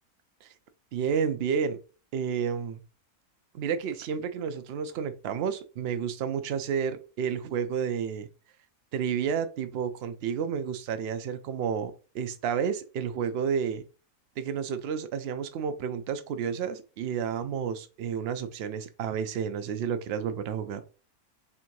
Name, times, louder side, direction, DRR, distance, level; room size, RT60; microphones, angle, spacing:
voice 1, 0.9-1.8 2.1-2.8 3.5-8.3 8.9-13.8 14.4-20.8, right 7 dB, 75° right, 0.5 m, -31 dB
3.5 x 2.6 x 4.5 m
omnidirectional pair, 1.6 m